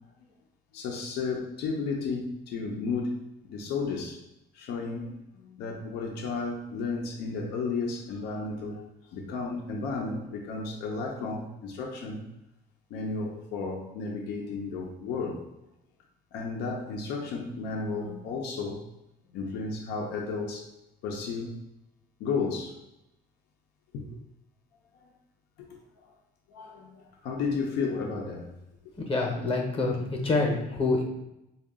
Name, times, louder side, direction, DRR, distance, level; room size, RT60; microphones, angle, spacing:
voice 1, 0.7-3.2 3.5-4.2 4.5-8.8 9.1-12.2 12.9-15.4 16.3-18.8 19.3-20.7 21.0-21.6 22.2-22.8 23.9-24.2 25.6-26.1 26.5-28.5, left 4 dB, 80° left, 0 dB, 0.6 m, -33 dB
voice 2, 29.0-31.0, left 3 dB, 35° left, 1 dB, 0.8 m, -27 dB
3.7 x 2.3 x 3.5 m, 0.89 s
cardioid pair, 110°, 17 cm